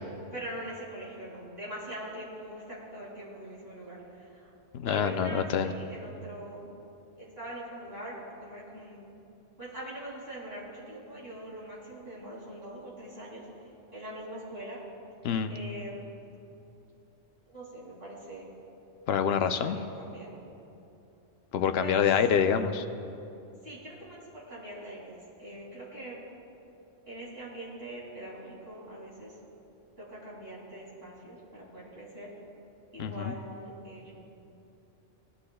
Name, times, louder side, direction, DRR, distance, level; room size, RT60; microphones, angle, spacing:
voice 1, 0.3-4.5 4.8-6.7 7.2-9.1 9.6-14.8 15.5-16.1 17.5-18.6 19.6-20.3 21.7-22.0 23.6-25.1 25.4-26.2 27.1-29.4 30.0-32.3 32.9-34.1, right 1 dB, 50° right, -6 dB, 2.9 m, -42 dB
voice 2, 4.7-5.7 15.2-15.6 19.1-19.8 21.5-22.8 33.0-33.3, left 7 dB, 65° left, 8 dB, 0.7 m, -26 dB
18.5 x 11.5 x 2.3 m, 2.8 s
omnidirectional pair, 1.3 m